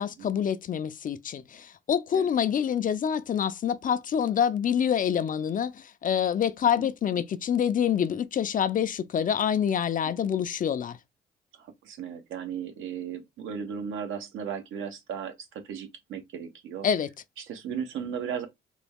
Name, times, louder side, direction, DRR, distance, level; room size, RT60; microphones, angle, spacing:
voice 1, 0.0-11.0 16.8-17.1, left 8 dB, 45° left, 0.4 m, -26 dB
voice 2, 11.6-16.9 17.4-18.5, right 7 dB, 80° right, 1.0 m, -36 dB
3.9 x 2.2 x 3.5 m
cardioid pair, 90°, 20 cm